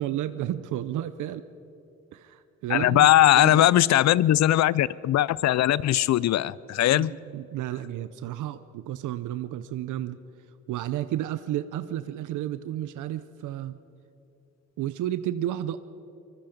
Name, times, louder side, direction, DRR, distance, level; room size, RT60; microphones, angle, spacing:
voice 1, 0.0-1.4 2.1-3.7 6.9-10.2 10.7-13.7 14.8-15.8, right 12 dB, 80° right, 13 dB, 0.7 m, -32 dB
voice 2, 2.7-7.1, left 13 dB, 65° left, 21 dB, 0.5 m, -20 dB
24.0 x 20.5 x 5.2 m, 2.9 s
cardioid pair, 90°, 30 cm